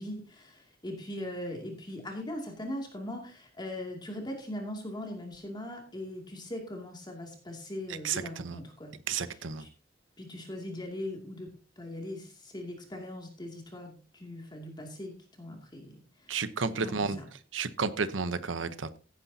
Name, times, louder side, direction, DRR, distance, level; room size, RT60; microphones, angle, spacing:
voice 1, 0.0-8.9 9.3-9.7 10.2-11.5 11.8-16.4 16.8-17.3, left 1 dB, 25° left, 1 dB, 2.5 m, -40 dB
voice 2, 7.9-8.6 9.1-9.6 16.3-17.2 17.5-19.0, right 5 dB, 85° right, 13 dB, 0.9 m, -32 dB
16.0 x 9.9 x 2.8 m, 0.36 s
head